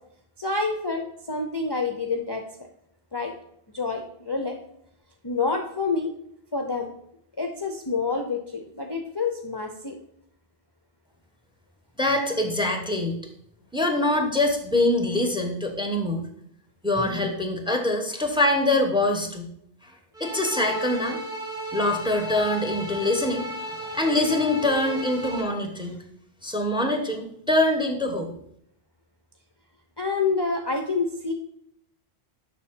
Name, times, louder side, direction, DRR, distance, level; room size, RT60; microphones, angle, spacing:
voice 1, 0.4-2.4 3.1-3.3 3.7-4.6 5.2-6.1 6.5-6.9 7.4-10.0 17.0-17.3 23.8-24.0 30.0-31.3, left 4 dB, 30° left, 3 dB, 0.6 m, -28 dB
voice 2, 12.0-13.1 13.7-16.3 16.8-19.5 19.8-19.9 20.2-21.2 21.7-26.0 26.4-28.3, left 1 dB, 5° right, 4 dB, 0.9 m, -24 dB
sound 1, 20.1-25.4, right 1 dB, 50° right, 1.6 m, -34 dB
7.2 x 5.8 x 3.7 m, 0.71 s
omnidirectional pair, 1.1 m